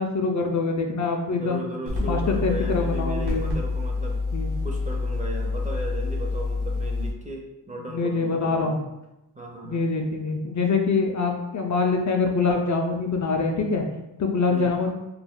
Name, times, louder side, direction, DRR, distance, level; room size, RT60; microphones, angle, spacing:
voice 1, 0.0-1.7 2.0-3.5 4.3-4.5 7.9-8.8 9.6-13.8 14.2-14.9, left 4 dB, 50° left, 2 dB, 0.4 m, -24 dB
voice 2, 1.3-4.2 4.6-8.7 9.3-9.8 14.5-14.7, right 2 dB, 20° right, -2 dB, 0.5 m, -36 dB
sound 1, 1.9-7.1, left 3 dB, 80° right, 1.0 m, -27 dB
2.4 x 2.2 x 3.5 m, 0.94 s
wide cardioid pair, 80°, 39 cm